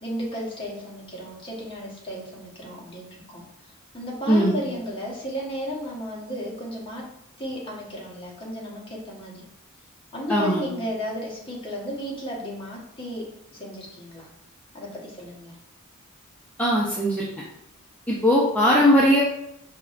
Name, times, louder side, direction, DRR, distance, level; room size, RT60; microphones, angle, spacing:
voice 1, 0.0-3.4 3.9-7.1 7.4-9.4 10.1-14.3 14.7-15.5, equal, 25° left, -5 dB, 1.2 m, -34 dB
voice 2, 4.3-4.6 10.3-10.6 16.6-17.2 18.1-19.2, equal, 10° left, -6 dB, 0.6 m, -19 dB
5.6 x 3.0 x 2.5 m, 0.82 s
head